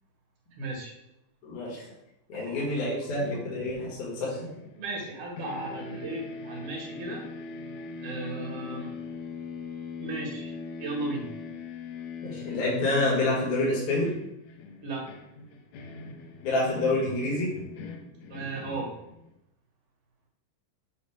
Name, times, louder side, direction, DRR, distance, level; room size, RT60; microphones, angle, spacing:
voice 1, 0.6-0.9 2.3-2.6 4.5-7.2 8.0-8.9 10.0-11.3 14.8-15.0 18.3-18.9, right 2 dB, 65° right, -1 dB, 3.1 m, -36 dB
voice 2, 1.4-1.9 2.3-4.5 12.2-14.1 16.4-17.5, left 2 dB, 60° left, -6 dB, 3.0 m, -28 dB
sound 1, 2.9-5.1 5.4-19.3, left 4 dB, 80° left, 1.6 m, -41 dB
8.2 x 2.8 x 5.0 m, 0.84 s
omnidirectional pair, 3.9 m